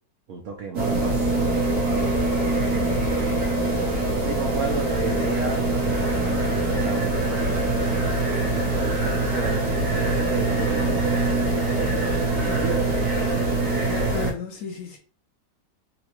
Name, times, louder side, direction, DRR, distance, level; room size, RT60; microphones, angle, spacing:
voice 1, 0.3-2.2 2.6-7.9 8.3-11.7 12.1-13.6, right 4 dB, 80° right, 0.6 m, -34 dB
sound 1, 0.7-14.3, right 2 dB, 60° right, 1.4 m, -23 dB
voice 2, 13.9-15.0, left 5 dB, 65° left, 1.0 m, -33 dB
3.9 x 2.2 x 2.9 m
omnidirectional pair, 1.9 m